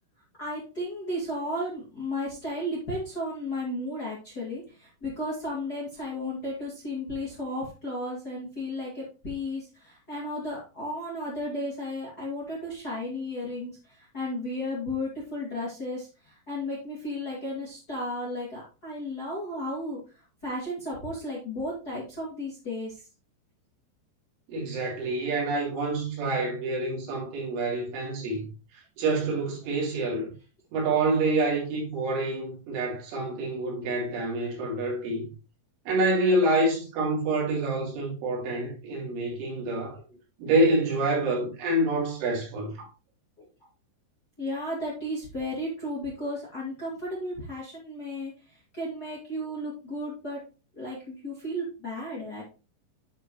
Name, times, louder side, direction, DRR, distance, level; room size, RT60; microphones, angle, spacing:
voice 1, 0.4-23.1 39.9-40.0 44.4-50.4 50.8-52.4, left 1 dB, 30° left, 1.8 m, -34 dB
voice 2, 24.5-30.3 30.7-35.3 35.9-40.0 40.4-42.9, right 2 dB, 90° right, 5.2 m, -27 dB
10.5 x 4.7 x 3.1 m
omnidirectional pair, 5.3 m